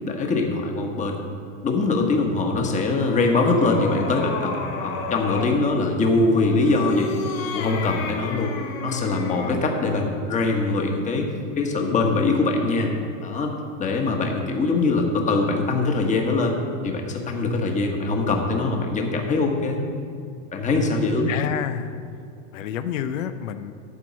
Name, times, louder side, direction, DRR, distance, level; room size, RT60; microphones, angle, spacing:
voice 1, 0.1-1.2 1.6-4.6 4.8-7.1 7.5-8.5 8.8-11.3 11.6-12.9 13.2-13.5 13.8-16.6 16.8-19.8 20.5-21.3, left 3 dB, 20° left, 2 dB, 1.2 m, -22 dB
sound 1, 2.6-5.6 6.5-9.7, left 3 dB, 40° left, 1.3 m, -32 dB
voice 2, 21.3-22.0 22.5-23.7, left 9 dB, 90° left, 10 dB, 0.7 m, -29 dB
12.5 x 4.6 x 7.3 m, 2.4 s
supercardioid pair, 135°, 37 cm